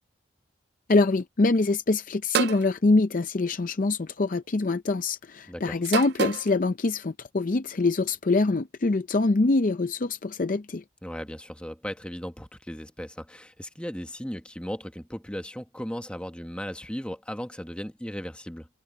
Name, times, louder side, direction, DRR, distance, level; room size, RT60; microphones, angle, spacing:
voice 1, 0.9-10.8, left 3 dB, 40° left, 0.5 m, -24 dB
sound 1, 2.3-2.7 3.9-4.2 5.8-6.5, right 8 dB, 55° right, 0.3 m, -28 dB
voice 2, 5.5-5.8 11.0-18.7, equal, 5° left, 1.2 m, -36 dB
head